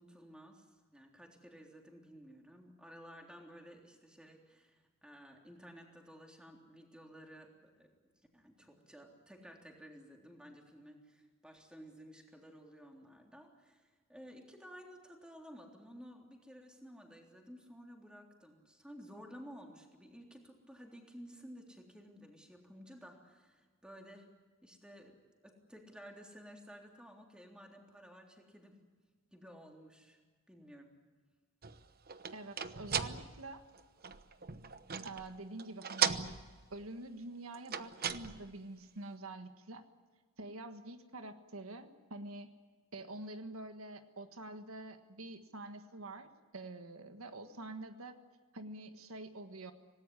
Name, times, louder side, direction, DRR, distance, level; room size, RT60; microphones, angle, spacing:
voice 1, 0.0-7.9 8.3-24.3 24.6-25.2 25.4-28.7 29.3-30.2 30.5-30.9, equal, 5° right, 1 dB, 3.5 m, -54 dB
sound 1, 31.6-35.3 35.6-36.9 37.5-38.6, right 7 dB, 45° right, 1.0 m, -37 dB
voice 2, 32.3-33.6 35.0-36.2 36.7-39.8 40.4-42.5 42.9-48.2 48.5-49.7, right 2 dB, 85° right, 8 dB, 1.6 m, -47 dB
26.5 x 18.5 x 9.7 m, 1.4 s
head